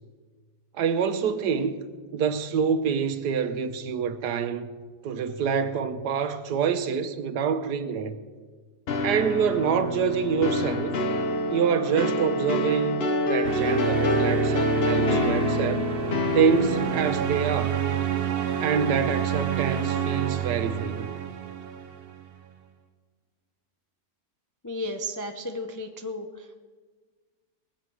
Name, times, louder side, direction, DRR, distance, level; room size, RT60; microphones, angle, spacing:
voice 1, 0.7-1.8 2.1-4.7 5.0-8.1 9.0-10.9 11.5-15.9 16.3-17.8 18.6-21.1, right 6 dB, 85° right, 1.5 m, -26 dB
sound 1, 8.9-17.1, left 2 dB, 45° left, 1.0 m, -27 dB
sound 2, 13.4-22.3, right 7 dB, 45° right, 0.9 m, -28 dB
voice 2, 24.6-26.5, left 1 dB, 20° left, 0.5 m, -34 dB
21.0 x 8.1 x 6.3 m
omnidirectional pair, 1.7 m